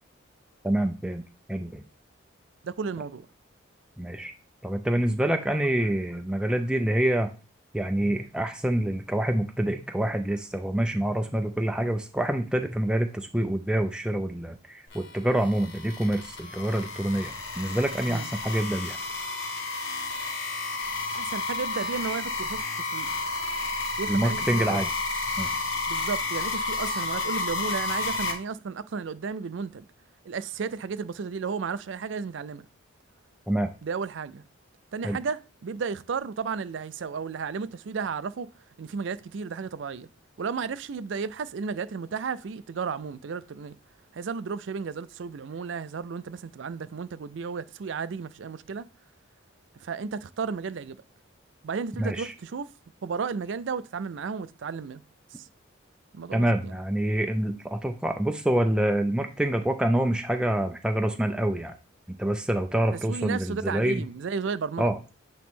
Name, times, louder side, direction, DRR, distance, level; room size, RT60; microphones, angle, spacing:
voice 1, 0.6-1.2 1.5-1.8 4.0-4.3 4.6-7.3 7.7-19.0 24.1-24.9 25.4-25.6 33.5-33.7 35.0-35.2 52.0-52.3 56.3-61.7 62.2-64.0 64.8-65.0, right 1 dB, 5° right, 0.4 m, -26 dB
voice 2, 2.6-3.3 18.1-18.3 21.1-23.1 24.0-24.8 25.9-29.8 30.3-32.6 33.8-34.4 34.9-38.5 38.8-40.1 40.4-43.7 44.1-48.9 49.8-51.0 51.6-52.7 53.0-55.0 55.4-55.5 56.1-56.7 63.1-64.9, right 5 dB, 65° right, 0.4 m, -33 dB
sound 1, 14.9-28.3, left 3 dB, 60° left, 1.4 m, -31 dB
8.6 x 3.0 x 3.6 m
head